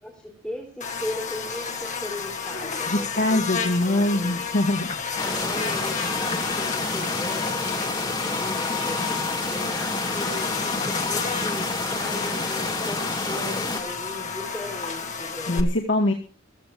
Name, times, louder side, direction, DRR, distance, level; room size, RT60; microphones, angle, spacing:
voice 1, 0.0-4.4 5.2-9.0 9.5-15.6, left 1 dB, 5° left, -3 dB, 3.9 m, -37 dB
Buzz, 0.8-15.6, left 5 dB, 35° left, 1.7 m, -31 dB
voice 2, 2.9-4.9 15.5-16.1, left 1 dB, 60° left, -1 dB, 2.0 m, -23 dB
sound 1, 5.2-13.8, left 2 dB, 20° left, 2.6 m, -29 dB
15.5 x 14.5 x 4.9 m, 0.39 s
head